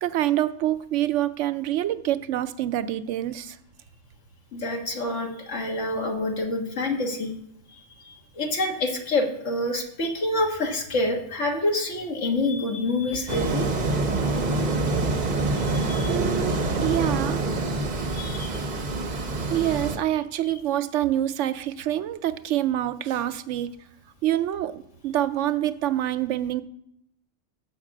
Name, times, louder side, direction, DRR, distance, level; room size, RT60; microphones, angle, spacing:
voice 1, 0.0-3.6 16.1-17.4 19.5-23.7 24.2-26.6, right 12 dB, 80° right, 13 dB, 0.9 m, -26 dB
voice 2, 4.5-7.3 7.7-13.7 15.9-16.2 18.1-18.6, left 2 dB, 90° left, 2 dB, 1.8 m, -27 dB
sound 1, 13.3-20.0, right 2 dB, 40° right, 0.9 m, -26 dB
7.3 x 5.7 x 7.2 m, 0.77 s
omnidirectional pair, 1.2 m